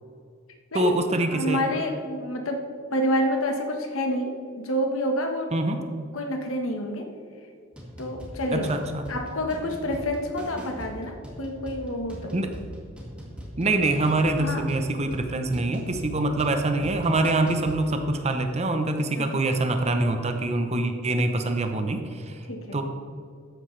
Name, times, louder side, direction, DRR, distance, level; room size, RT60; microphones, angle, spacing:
voice 1, 0.7-1.6 5.5-5.8 8.5-9.0 12.3-12.5 13.6-22.3 22.7-22.8, right 2 dB, 30° right, 6 dB, 0.8 m, -25 dB
voice 2, 1.3-2.7 2.9-5.6 6.1-7.1 8.0-8.7 9.1-12.4 14.4-14.6 16.8-16.9 19.1-19.4 22.5-22.8, equal, 75° left, 3 dB, 1.4 m, -28 dB
sound 1, 7.7-18.1, equal, 5° right, 2.0 m, -41 dB
13.0 x 9.7 x 3.3 m, 2.3 s
head